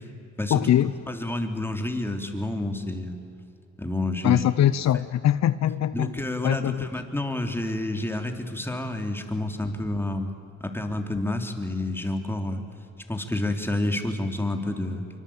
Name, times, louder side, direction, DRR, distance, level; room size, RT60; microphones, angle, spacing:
voice 1, 0.5-0.9 4.2-6.2 6.4-6.9, left 11 dB, 60° left, 14 dB, 0.8 m, -22 dB
voice 2, 1.1-3.2 3.8-4.4 5.9-10.3 10.6-12.6 13.1-15.0, left 1 dB, 5° left, 4 dB, 3.4 m, -29 dB
25.0 x 24.5 x 8.8 m, 2.6 s
cardioid pair, 90°, 30 cm